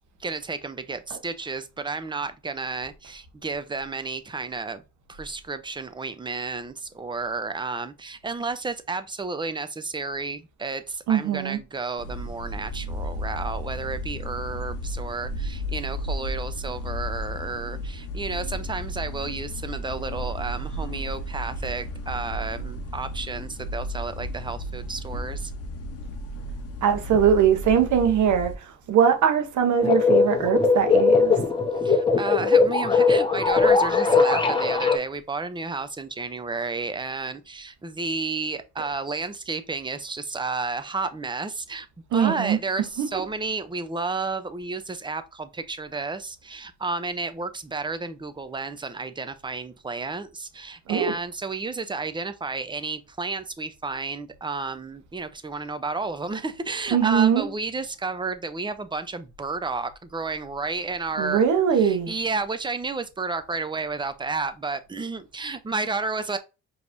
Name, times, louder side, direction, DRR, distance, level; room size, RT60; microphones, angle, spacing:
voice 1, 0.2-4.8 5.1-25.5 31.8-41.9 42.1-61.4 61.7-66.4, right 3 dB, 15° right, 0.6 m, -32 dB
voice 2, 11.1-11.6 26.8-31.3 42.1-42.6 43.0-43.1 50.9-51.1 56.9-57.5 61.2-62.1, right 8 dB, 75° right, 1.1 m, -21 dB
sound 1, 12.0-28.6, equal, 50° left, 0.8 m, -33 dB
sound 2, 29.8-35.0, left 4 dB, 15° left, 1.0 m, -20 dB
5.0 x 3.1 x 2.6 m
cardioid pair, 90°, 30 cm